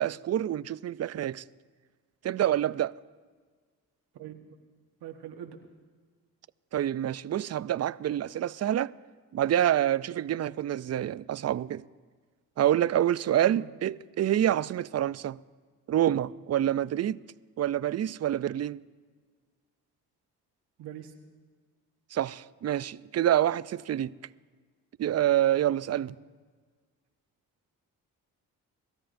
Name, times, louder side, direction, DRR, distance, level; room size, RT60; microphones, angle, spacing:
voice 1, 0.0-1.4 2.2-2.9 6.7-8.9 9.3-11.8 12.6-15.4 15.9-17.2 17.6-18.8 22.1-24.1 25.0-26.2, right 11 dB, 45° right, 0.4 m, -27 dB
voice 2, 5.0-5.6 13.5-13.7 20.8-21.1 25.9-26.1, right 10 dB, 85° right, 1.3 m, -43 dB
24.5 x 13.5 x 2.6 m
supercardioid pair, 55°, 39 cm